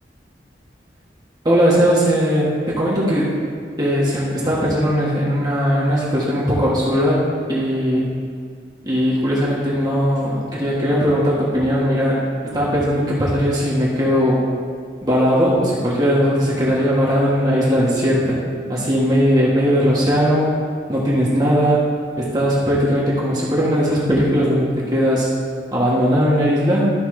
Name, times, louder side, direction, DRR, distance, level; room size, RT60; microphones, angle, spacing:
voice 1, 1.4-3.3 3.8-8.1 8.8-12.2 12.5-14.4 15.0-18.4 18.7-20.6 20.9-21.9 22.2-25.3 25.7-26.9, equal, 25° right, -7 dB, 1.4 m, -18 dB
13.0 x 5.5 x 3.3 m, 2.1 s
head